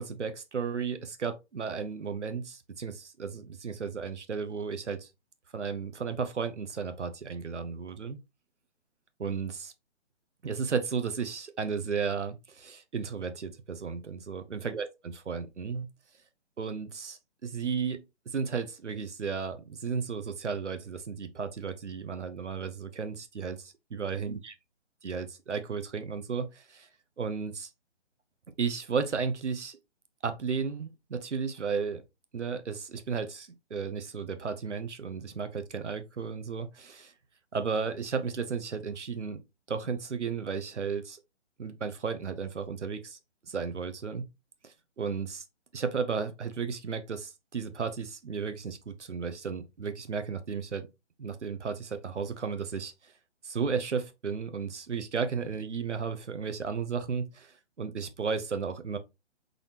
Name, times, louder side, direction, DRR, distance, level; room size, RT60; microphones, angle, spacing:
voice 1, 0.0-5.1 5.5-8.2 9.2-9.7 10.4-15.9 16.6-24.5 25.0-26.9 27.2-27.7 28.6-29.8 30.2-32.0 32.3-37.1 37.5-39.4 39.7-41.2 41.6-43.2 43.5-44.3 44.6-45.4 45.7-50.9 51.2-53.1 53.4-59.0, right 5 dB, 75° right, 0.9 m, -34 dB
3.9 x 3.5 x 2.9 m
figure-of-eight pair, 140°, 35 cm